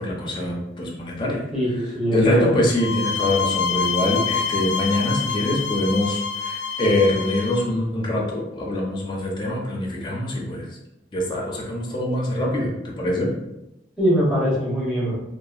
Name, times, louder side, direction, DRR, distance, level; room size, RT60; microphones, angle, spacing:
voice 1, 0.0-1.4 2.1-10.7 11.1-13.3, left 1 dB, 25° left, -2 dB, 0.6 m, -24 dB
voice 2, 1.5-2.5 14.0-15.2, equal, 5° right, -8 dB, 0.8 m, -21 dB
sound 1, 2.8-7.7, left 6 dB, 75° left, 0.3 m, -26 dB
2.8 x 2.5 x 2.4 m, 0.90 s
head